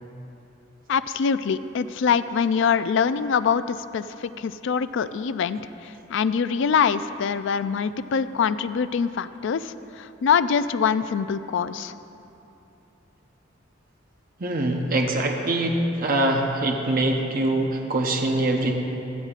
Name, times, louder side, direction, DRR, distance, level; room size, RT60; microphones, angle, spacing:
voice 1, 0.9-11.9, left 6 dB, 65° left, 13 dB, 0.4 m, -24 dB
voice 2, 14.4-18.7, right 1 dB, 45° right, 2 dB, 0.8 m, -23 dB
15.5 x 13.0 x 2.5 m, 2.9 s
head